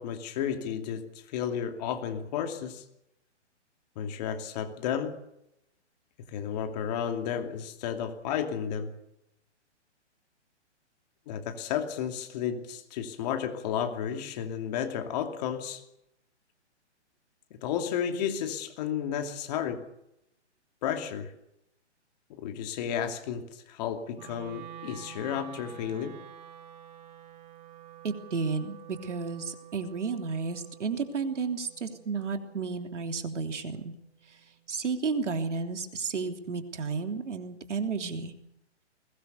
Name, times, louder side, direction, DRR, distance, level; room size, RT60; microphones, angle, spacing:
voice 1, 0.0-2.8 4.0-5.2 6.3-8.9 11.3-15.8 17.6-19.9 20.8-21.3 22.3-26.2, left 8 dB, 35° left, 6 dB, 2.7 m, -32 dB
Wind instrument woodwind instrument, 24.1-34.3, right 10 dB, 35° right, 2.4 m, -49 dB
voice 2, 28.0-33.9 34.7-38.3, right 5 dB, 80° right, 5 dB, 3.3 m, -32 dB
21.5 x 19.5 x 6.8 m, 0.82 s
hypercardioid pair, 145°, 35 cm